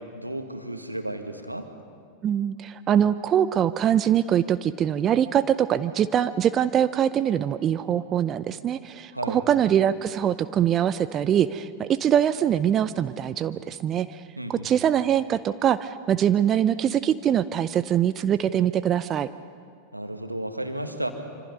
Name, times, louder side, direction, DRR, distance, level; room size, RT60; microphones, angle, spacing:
voice 1, 0.0-1.7 9.1-9.4 14.4-14.7 19.9-21.1, right 1 dB, 85° right, 6 dB, 1.7 m, -33 dB
voice 2, 2.2-14.2 14.5-19.3, right 9 dB, 30° right, 13 dB, 0.5 m, -23 dB
26.0 x 26.0 x 5.4 m, 2.2 s
figure-of-eight pair, 90°, 0 cm